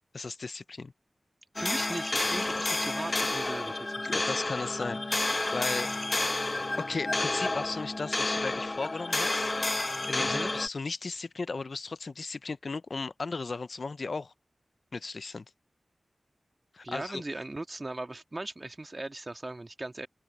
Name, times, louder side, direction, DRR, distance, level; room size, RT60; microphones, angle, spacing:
voice 1, 0.1-0.9 4.0-5.9 6.8-9.5 10.1-14.3 14.9-15.4 16.7-17.2, left 3 dB, 65° left, 0.6 m, -36 dB
sound 1, 1.6-10.7, left 2 dB, 40° left, 1.0 m, -30 dB
voice 2, 1.6-4.1 10.2-10.5 16.8-20.1, right 2 dB, 40° right, 2.0 m, -38 dB
cardioid pair, 40°, 0 cm